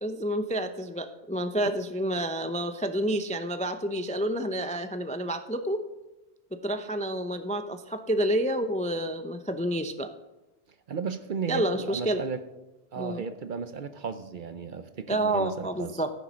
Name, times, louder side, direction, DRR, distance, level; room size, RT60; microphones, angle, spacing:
voice 1, 0.0-5.9 6.5-10.1 11.5-12.2 13.0-13.2 15.1-16.1, right 1 dB, 10° left, 8 dB, 0.4 m, -29 dB
voice 2, 10.9-12.4 12.9-16.0, right 6 dB, 55° right, 11 dB, 0.7 m, -35 dB
14.5 x 6.9 x 6.2 m, 1.0 s
omnidirectional pair, 1.2 m